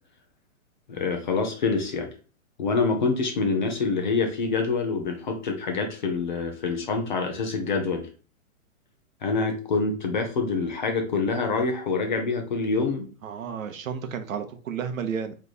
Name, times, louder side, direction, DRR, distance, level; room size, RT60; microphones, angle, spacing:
voice 1, 0.9-2.1 2.6-8.1 9.2-13.1, left 4 dB, 35° left, 3 dB, 0.8 m, -26 dB
voice 2, 13.2-15.3, right 7 dB, 65° right, 8 dB, 0.9 m, -32 dB
3.4 x 3.2 x 4.0 m, 0.36 s
hypercardioid pair, 175°, 43 cm